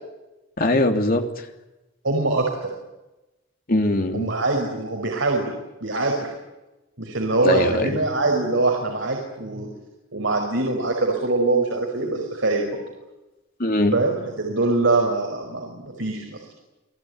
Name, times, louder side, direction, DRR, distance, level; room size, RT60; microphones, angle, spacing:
voice 1, 0.6-1.5 3.7-4.3 7.4-8.0 13.6-13.9, left 1 dB, 50° left, 4 dB, 3.1 m, -21 dB
voice 2, 2.0-2.7 4.1-5.5 5.8-6.3 7.0-9.7 10.1-12.8 13.9-16.4, right 2 dB, 70° right, 1 dB, 5.3 m, -23 dB
29.0 x 19.0 x 9.7 m, 1.0 s
head